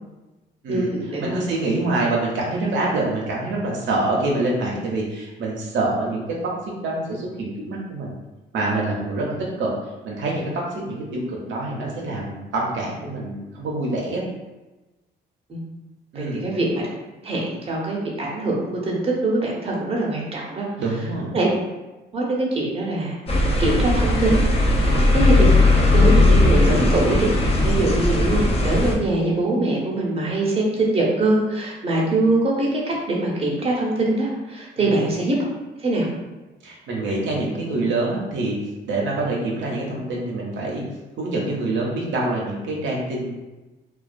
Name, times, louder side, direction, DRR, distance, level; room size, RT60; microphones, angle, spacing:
voice 1, 0.7-1.4 15.5-15.6 16.1-16.8 17.2-20.7 21.3-21.5 22.1-23.2 23.6-24.4 25.1-25.5 25.9-35.3 35.8-36.1, right 2 dB, 30° right, -3 dB, 0.6 m, -23 dB
voice 2, 1.2-6.5 6.8-8.1 8.5-9.3 9.6-9.7 10.0-14.2 16.1-16.4 20.8-21.3 24.8-25.0 27.7-27.8 34.8-35.0 36.6-38.5 38.9-40.8 41.2-43.3, right 2 dB, 70° right, -3 dB, 0.6 m, -26 dB
sound 1, 23.3-28.9, left 2 dB, 30° left, 0.5 m, -17 dB
2.3 x 2.2 x 2.4 m, 1.1 s
cardioid pair, 90°, 20 cm